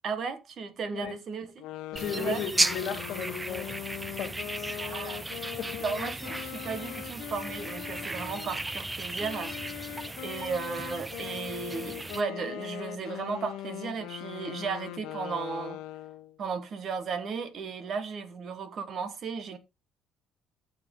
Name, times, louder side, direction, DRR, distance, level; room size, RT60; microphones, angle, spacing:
voice 1, 0.0-1.6 2.2-2.4 4.8-5.3 5.8-9.9 10.2-15.8 16.4-19.6, right 5 dB, 35° right, 1.2 m, -35 dB
sound 1, 1.6-8.6 9.2-16.4, left 14 dB, 85° left, 0.7 m, -40 dB
voice 2, 1.9-3.7 4.2-4.4 5.6-5.7, left 6 dB, 45° left, 2.3 m, -34 dB
sound 2, 2.0-12.2, right 2 dB, 10° right, 0.4 m, -35 dB
14.5 x 6.0 x 3.6 m
cardioid pair, 180°, 0 cm